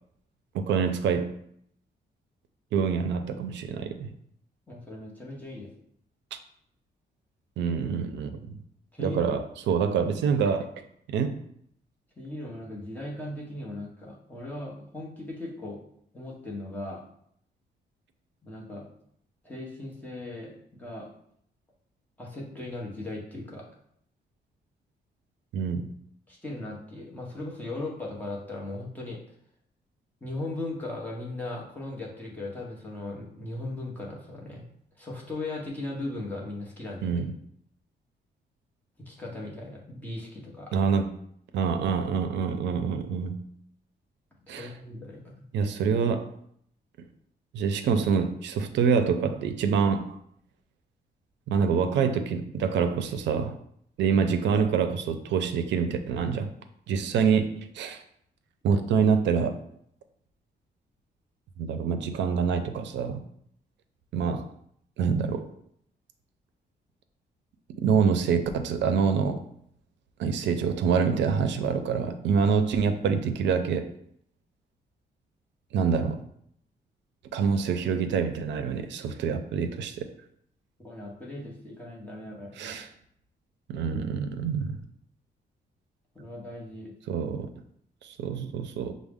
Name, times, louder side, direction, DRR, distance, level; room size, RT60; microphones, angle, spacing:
voice 1, 0.5-1.3 2.7-4.1 6.3-6.4 7.6-8.6 9.0-10.7 11.1-11.4 25.5-25.9 37.0-37.3 40.7-41.1 41.5-43.4 44.5-44.7 45.5-46.3 47.5-50.2 51.5-53.6 54.0-56.5 56.9-58.0 58.6-59.6 61.6-63.2 64.1-64.5 65.0-65.5 67.8-69.4 70.2-73.9 75.7-76.2 77.3-80.0 82.6-82.9 83.7-84.8 87.1-87.5 88.0-88.9, right 6 dB, 85° right, 9 dB, 0.4 m, -26 dB
voice 2, 4.7-5.7 8.9-9.4 12.2-15.8 16.1-17.0 18.4-18.8 19.4-21.1 22.2-23.6 26.3-29.2 30.2-34.6 35.0-37.2 39.0-40.7 44.5-45.4 80.8-82.8 86.1-86.9, left 2 dB, 10° left, -3 dB, 0.8 m, -38 dB
6.0 x 2.0 x 3.5 m, 0.69 s
wide cardioid pair, 180°, 18 cm